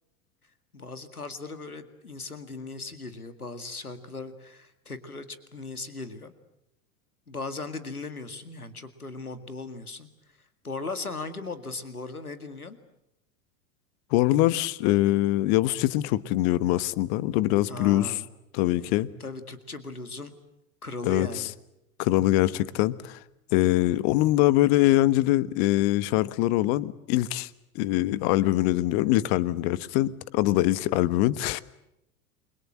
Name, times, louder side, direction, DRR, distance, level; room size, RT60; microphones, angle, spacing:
voice 1, 0.7-5.3 5.5-6.3 7.3-10.1 10.6-12.8 17.7-18.3 19.2-20.3 20.8-21.5, left 3 dB, 90° left, 11 dB, 2.1 m, -37 dB
voice 2, 14.1-18.2 18.5-19.1 21.0-21.3 22.0-23.2 23.5-27.5 27.7-31.6, left 16 dB, 45° left, 17 dB, 1.3 m, -23 dB
29.0 x 23.5 x 7.8 m, 0.84 s
figure-of-eight pair, 85°, 43 cm